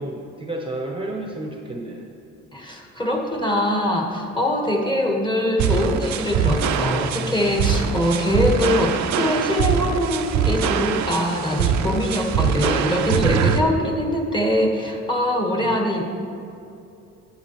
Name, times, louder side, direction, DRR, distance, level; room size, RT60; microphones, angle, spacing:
voice 1, 0.0-2.1 13.7-14.0 15.6-15.9, right 1 dB, 15° right, 0 dB, 0.9 m, -32 dB
voice 2, 2.5-16.0, left 1 dB, 15° left, 1 dB, 1.4 m, -23 dB
sound 1, 5.6-13.6, right 7 dB, 70° right, 0.6 m, -23 dB
11.5 x 8.3 x 3.0 m, 2.6 s
cardioid pair, 90°, 30 cm